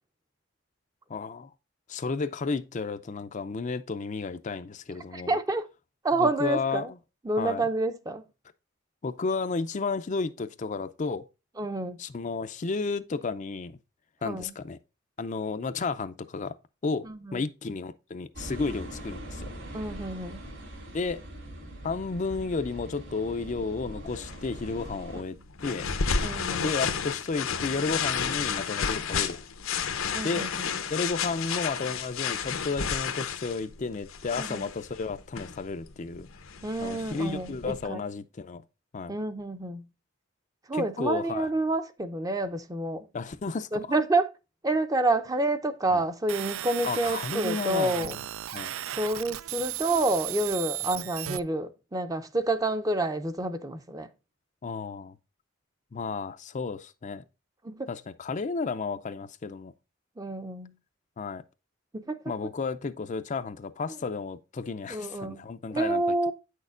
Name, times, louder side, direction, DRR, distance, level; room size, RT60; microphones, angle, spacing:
voice 1, 1.1-1.5 1.9-5.4 6.2-6.9 7.4-7.7 9.0-11.2 12.0-13.8 14.2-14.8 15.2-16.5 16.8-17.1 17.3-19.5 20.9-21.2 21.8-25.8 26.6-29.4 30.2-30.5 30.9-36.3 36.8-38.6 38.9-39.2 40.7-41.5 43.1-43.7 45.9-46.0 46.8-48.1 48.5-48.7 50.9-51.0 54.6-55.2 55.9-57.2 57.9-59.7 61.2-61.4 62.3-66.0, left 4 dB, 35° left, 0.4 m, -32 dB
voice 2, 5.1-5.7 6.0-6.9 7.2-8.2 11.6-12.0 14.2-14.5 17.0-17.4 19.7-20.5 25.1-25.2 26.2-26.7 30.1-30.5 34.4-34.6 36.6-38.0 39.1-39.8 40.7-43.1 43.7-44.3 44.6-48.2 49.0-54.1 57.6-57.9 60.2-60.7 61.9-62.2 64.9-65.4 65.7-66.3, right 2 dB, 15° right, 0.6 m, -28 dB
sound 1, 18.3-25.2, right 1 dB, 65° right, 3.6 m, -42 dB
sound 2, 24.2-37.8, left 6 dB, 85° left, 0.9 m, -32 dB
sound 3, 46.3-51.4, right 13 dB, 80° right, 0.4 m, -35 dB
8.9 x 6.5 x 2.4 m
head